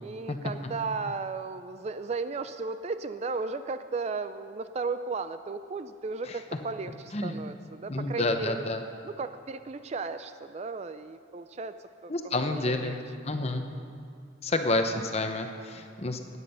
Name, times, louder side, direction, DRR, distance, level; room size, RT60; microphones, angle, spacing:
voice 1, 0.0-8.7 9.0-11.7 12.0-12.1 12.4-13.0 13.5-13.9, right 4 dB, 35° right, 11 dB, 0.3 m, -35 dB
voice 2, 7.9-8.8 12.1-13.0 13.2-13.6 14.4-16.4, left 2 dB, 30° left, 6 dB, 0.9 m, -29 dB
16.0 x 9.9 x 5.6 m, 2.4 s
head